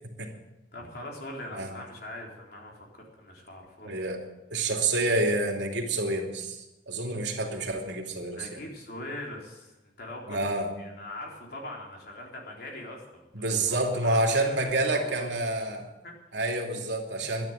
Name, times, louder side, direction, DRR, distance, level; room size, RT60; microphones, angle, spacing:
voice 1, 0.7-4.0 8.3-10.4 10.8-15.3 16.0-16.4 17.1-17.2, left 1 dB, 60° left, -1 dB, 3.9 m, -42 dB
voice 2, 3.8-4.2 4.5-8.6 10.3-10.7 13.3-15.9 16.3-17.5, right 2 dB, 85° right, 2 dB, 2.7 m, -28 dB
12.0 x 11.0 x 9.0 m, 0.97 s
head